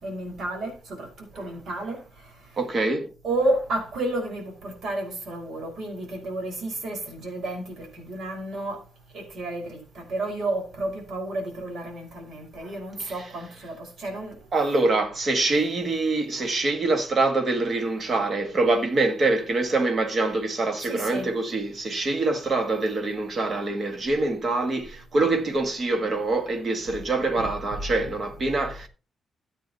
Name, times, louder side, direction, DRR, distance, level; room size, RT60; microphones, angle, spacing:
voice 1, 0.0-2.0 3.2-8.8 9.1-14.4 20.8-21.3, right 2 dB, 60° right, 5.5 m, -31 dB
voice 2, 2.6-3.1 12.6-12.7 13.0-13.3 14.5-28.9, right 2 dB, 35° right, 1.8 m, -25 dB
14.0 x 9.1 x 3.0 m
cardioid pair, 145°, 0 cm